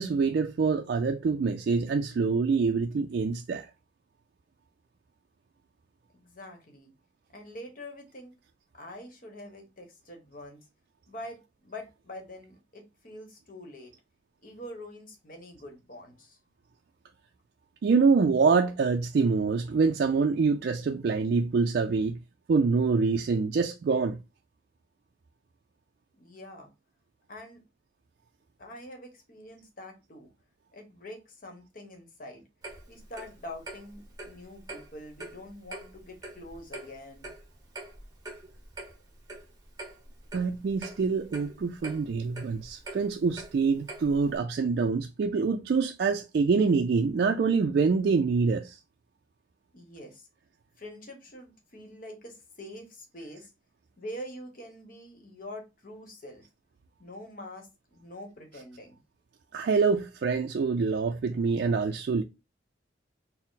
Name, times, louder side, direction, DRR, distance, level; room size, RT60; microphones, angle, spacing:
voice 1, 0.0-3.7 17.8-22.2 22.5-24.2 40.3-48.8 59.5-62.2, right 4 dB, 55° right, 0.3 m, -25 dB
voice 2, 6.1-6.9 7.3-8.3 8.7-10.6 11.1-13.9 14.4-16.4 26.1-26.7 27.3-27.6 28.6-30.3 30.7-32.4 32.9-37.3 49.7-50.3 50.8-53.5 54.0-56.5 57.0-59.0, left 1 dB, 45° left, 1.0 m, -45 dB
Clock, 32.6-44.4, right 2 dB, 20° right, 0.9 m, -45 dB
4.1 x 2.0 x 3.9 m
head